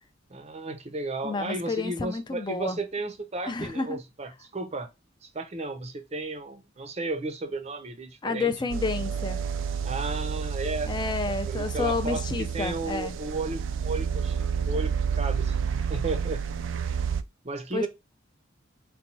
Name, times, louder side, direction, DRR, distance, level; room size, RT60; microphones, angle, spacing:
voice 1, 0.3-4.9 5.2-8.5 9.8-10.9 11.3-12.3 12.5-16.4 17.4-17.9, right 2 dB, 35° right, 0.6 m, -34 dB
voice 2, 1.2-2.8 3.5-4.0 8.2-9.4 10.9-13.2 17.7-17.9, left 4 dB, 25° left, 0.4 m, -30 dB
sound 1, 8.7-17.2, right 7 dB, 80° right, 0.4 m, -30 dB
4.2 x 2.2 x 4.0 m
head